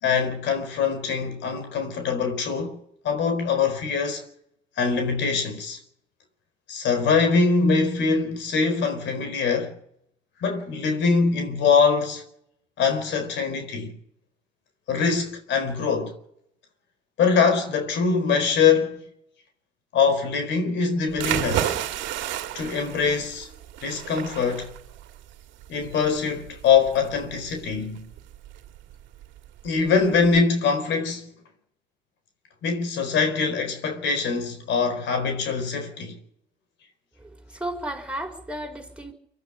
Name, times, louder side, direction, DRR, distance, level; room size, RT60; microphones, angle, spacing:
voice 1, 0.0-2.8 3.0-4.2 4.8-5.8 6.7-9.8 10.4-12.2 12.8-14.0 14.9-16.2 17.2-19.0 19.9-21.8 22.5-23.5 23.8-24.7 25.7-28.1 29.6-31.3 32.6-36.2, left 5 dB, 80° left, 4.3 m, -23 dB
sound 1, 21.1-30.4, right 12 dB, 90° right, 1.8 m, -33 dB
voice 2, 37.2-39.1, right 1 dB, 5° right, 4.9 m, -34 dB
24.5 x 12.0 x 9.7 m
cardioid pair, 90°, 19 cm